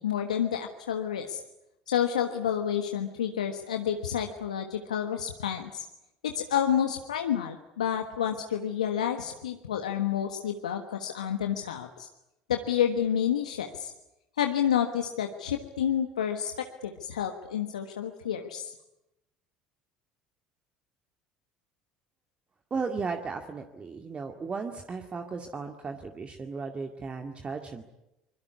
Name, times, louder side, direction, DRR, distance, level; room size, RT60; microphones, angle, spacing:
voice 1, 0.0-1.4 1.9-5.8 6.2-12.1 12.5-13.9 14.4-18.7, left 9 dB, 85° left, 5 dB, 1.4 m, -29 dB
voice 2, 22.7-27.8, right 4 dB, 30° right, 5 dB, 2.1 m, -35 dB
24.0 x 22.0 x 9.6 m, 0.90 s
hypercardioid pair, 70°, 4 cm